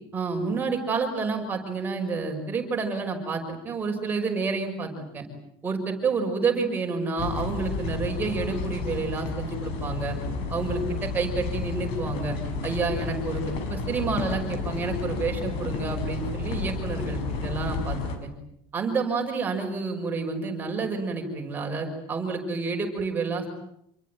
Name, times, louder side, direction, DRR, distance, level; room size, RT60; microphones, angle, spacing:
voice 1, 0.1-5.3 5.6-10.2 10.5-12.4 12.6-18.3 18.7-23.5, right 4 dB, 15° right, 2 dB, 5.7 m, -29 dB
sound 1, 7.2-18.2, left 3 dB, 50° left, 6.0 m, -31 dB
27.5 x 23.0 x 9.3 m, 0.75 s
cardioid pair, 175°, 13 cm